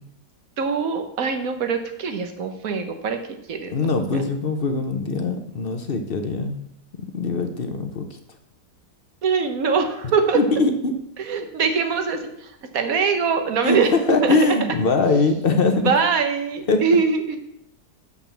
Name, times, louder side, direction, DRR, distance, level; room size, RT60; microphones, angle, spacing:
voice 1, 0.6-3.2 3.5-4.2 9.2-10.4 11.2-14.4 15.7-17.4, right 5 dB, 55° right, 6 dB, 1.3 m, -23 dB
voice 2, 3.7-6.6 7.0-8.1 10.3-10.9 13.6-15.9 16.7-16.8, left 3 dB, 45° left, 6 dB, 0.8 m, -22 dB
7.0 x 6.0 x 7.1 m, 0.80 s
omnidirectional pair, 1.9 m